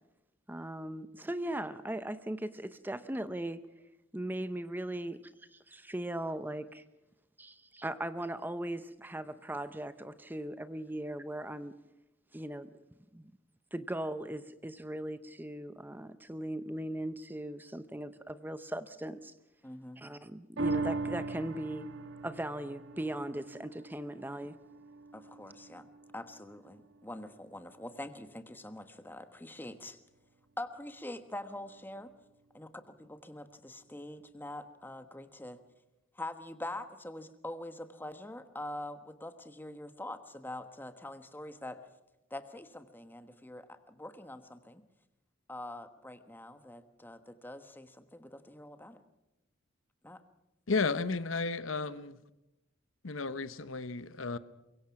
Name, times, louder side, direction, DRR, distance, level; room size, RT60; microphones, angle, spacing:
voice 1, 0.5-3.7 4.1-6.8 7.4-11.7 12.3-12.7 13.1-13.3 13.7-19.3 20.0-21.9 22.2-24.6, right 1 dB, 10° right, 0.7 m, -39 dB
voice 2, 19.6-20.0 25.1-25.9 26.1-30.0 30.6-32.1 32.5-35.6 36.1-41.8 42.3-44.8 45.5-49.0 50.0-50.2, left 1 dB, 10° left, 1.2 m, -44 dB
sound 1, 20.6-27.2 27.7-27.8, right 3 dB, 65° right, 1.5 m, -40 dB
voice 3, 50.7-52.2 53.0-54.4, left 4 dB, 80° left, 1.0 m, -33 dB
24.0 x 22.5 x 5.9 m
head